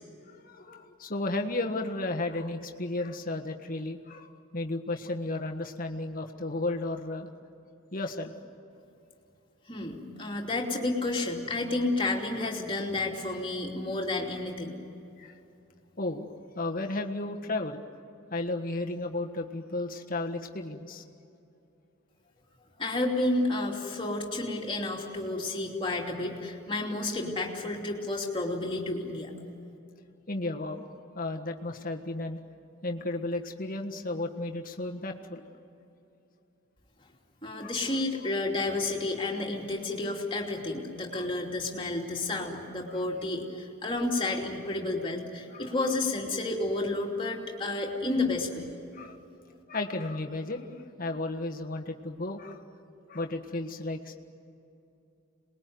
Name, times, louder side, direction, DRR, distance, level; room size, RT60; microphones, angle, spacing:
voice 1, 0.3-7.3 7.9-8.3 15.2-15.3 16.0-16.3 16.5-17.8 18.3-21.0 30.3-30.9 31.1-32.4 32.8-35.4 37.6-37.8 41.1-41.3 42.9-43.0 45.5-46.0 48.9-49.2 49.7-52.6 53.1-54.2, left 2 dB, 40° left, 3 dB, 1.5 m, -34 dB
voice 2, 9.7-14.8 22.8-29.3 37.4-48.7, left 2 dB, 25° left, -1 dB, 2.9 m, -31 dB
27.0 x 20.5 x 9.4 m, 2.8 s
head